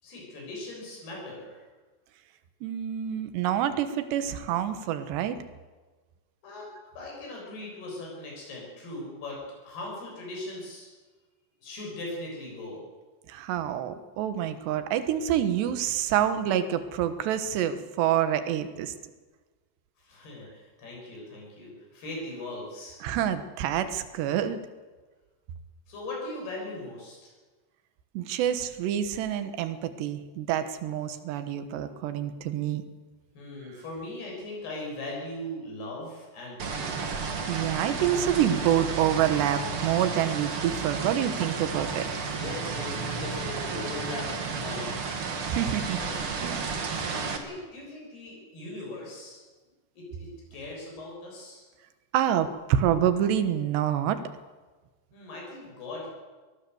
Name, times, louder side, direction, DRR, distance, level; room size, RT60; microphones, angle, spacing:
voice 1, 0.0-1.6 6.4-6.7 7.0-9.4 9.6-10.9 11.6-12.8 20.0-23.0 25.9-27.3 33.4-36.9 42.3-44.3 44.6-45.2 46.0-46.2 47.2-49.4 50.0-51.6 55.1-56.1, left 2 dB, 65° left, -2 dB, 9.1 m, -39 dB
voice 2, 2.6-5.4 13.3-18.9 23.0-24.6 28.1-32.8 37.5-42.1 45.5-46.0 46.4-46.6 52.1-54.2, right 10 dB, 80° right, 10 dB, 3.4 m, -27 dB
sound 1, 36.6-47.4, right 5 dB, 45° right, 2.1 m, -32 dB
23.5 x 17.5 x 7.9 m, 1.3 s
omnidirectional pair, 4.9 m